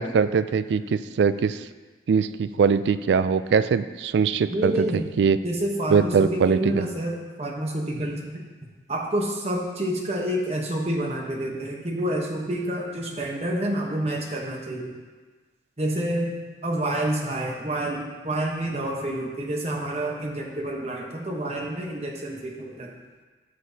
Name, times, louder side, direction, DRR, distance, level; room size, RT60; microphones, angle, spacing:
voice 1, 0.0-1.6 2.1-5.4 5.9-6.8, right 6 dB, 75° right, 13 dB, 0.3 m, -22 dB
voice 2, 4.5-5.1 5.4-8.4 8.9-15.0 15.8-22.9, right 1 dB, 35° right, 0 dB, 1.0 m, -28 dB
13.0 x 6.1 x 2.8 m, 1.3 s
head